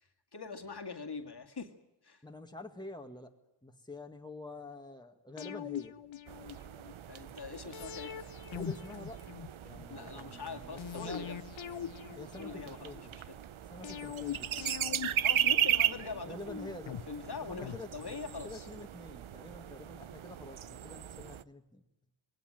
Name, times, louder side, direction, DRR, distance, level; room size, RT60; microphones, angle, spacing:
voice 1, 0.3-1.7 2.0-2.2 7.1-8.1 9.9-11.4 12.4-13.4 15.2-16.8 17.1-18.7, left 4 dB, 55° left, 3 dB, 2.2 m, -43 dB
voice 2, 2.2-3.3 3.6-5.9 7.6-7.7 8.5-9.2 9.6-11.3 12.2-13.1 13.7-14.5 16.3-17.0 17.4-17.9 18.4-21.8, left 2 dB, 10° left, 3 dB, 1.9 m, -47 dB
sound 1, 5.4-6.9 7.7-9.9 10.8-13.0 13.8-16.2 16.9-18.5 18.8-18.9, left 9 dB, 70° left, 0.9 m, -43 dB
sound 2, 6.3-21.4, right 10 dB, 85° right, 0.7 m, -37 dB
20.5 x 17.5 x 9.0 m, 0.99 s
cardioid pair, 50°, 47 cm